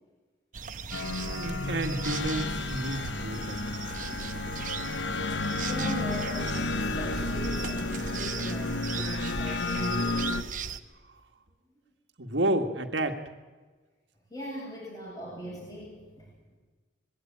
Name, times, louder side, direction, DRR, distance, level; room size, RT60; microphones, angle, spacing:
sound 1, 0.5-10.8, right 4 dB, 45° right, 0.9 m, -37 dB
sound 2, 0.9-10.4, left 3 dB, 85° left, 1.0 m, -32 dB
voice 1, 1.2-3.8 12.2-13.2, right 1 dB, 75° right, 5 dB, 1.9 m, -31 dB
voice 2, 5.6-10.5 14.3-16.3, right 1 dB, 20° left, -6 dB, 7.4 m, -40 dB
21.5 x 16.5 x 9.0 m, 1.3 s
head